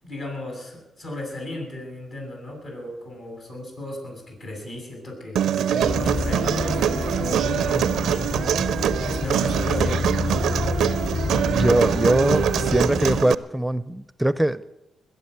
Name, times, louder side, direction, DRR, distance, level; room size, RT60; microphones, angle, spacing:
voice 1, 0.0-10.0, left 1 dB, 70° left, 1 dB, 7.8 m, -35 dB
Human voice, 5.4-13.3, right 9 dB, 80° right, 0.5 m, -24 dB
sound 1, 5.8-13.2, left 4 dB, 40° left, 0.6 m, -28 dB
voice 2, 11.5-14.7, right 1 dB, 5° right, 16 dB, 0.5 m, -22 dB
21.0 x 8.1 x 8.0 m, 0.90 s
supercardioid pair, 50°, 0 cm